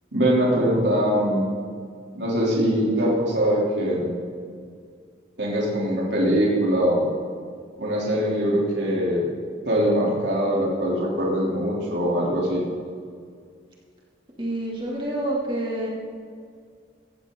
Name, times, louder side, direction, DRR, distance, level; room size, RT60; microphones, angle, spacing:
voice 1, 0.1-1.4 2.1-4.1 5.4-7.0 7.8-9.3 9.7-12.6, equal, 65° right, -5 dB, 3.3 m, -22 dB
voice 2, 14.4-15.9, right 1 dB, 25° right, -4 dB, 2.7 m, -27 dB
16.5 x 15.0 x 3.9 m, 2.1 s
head